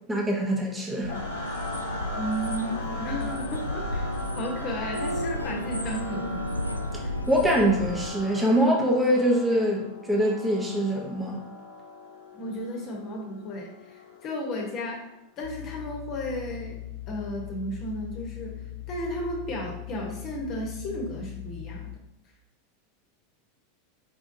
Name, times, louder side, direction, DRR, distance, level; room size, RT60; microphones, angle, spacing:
voice 1, 0.1-1.1 7.3-11.4, equal, 10° right, -2 dB, 1.0 m, -24 dB
sound 1, 1.0-8.1, left 1 dB, 90° left, 0.3 m, -32 dB
sound 2, 1.1-15.2, left 2 dB, 65° left, 0.9 m, -40 dB
voice 2, 2.2-4.1 4.3-6.5 12.3-15.1 15.4-16.8 17.1-18.6 18.9-22.0, equal, 40° left, 0 dB, 1.1 m, -34 dB
sound 3, 15.4-22.0, left 15 dB, 60° right, 1.0 m, -40 dB
5.0 x 3.5 x 2.7 m, 0.82 s
figure-of-eight pair, 85°, 0 cm